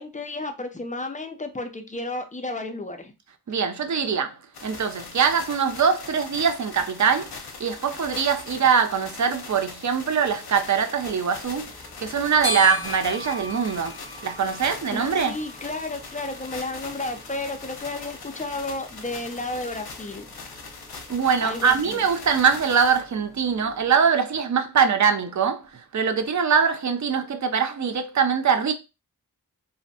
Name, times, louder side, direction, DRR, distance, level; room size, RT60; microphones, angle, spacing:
voice 1, 0.0-3.1 14.9-20.2 21.4-22.1, left 2 dB, 20° left, 0.4 m, -32 dB
voice 2, 3.5-4.4 4.6-7.3 7.6-11.7 12.0-14.0 14.2-15.3 21.1-28.7, right 6 dB, 50° right, 0.4 m, -22 dB
sound 1, 4.5-23.0, left 4 dB, 70° left, 0.6 m, -41 dB
sound 2, 11.4-24.0, equal, 10° right, 0.8 m, -40 dB
2.5 x 2.1 x 2.6 m
wide cardioid pair, 55°, 39 cm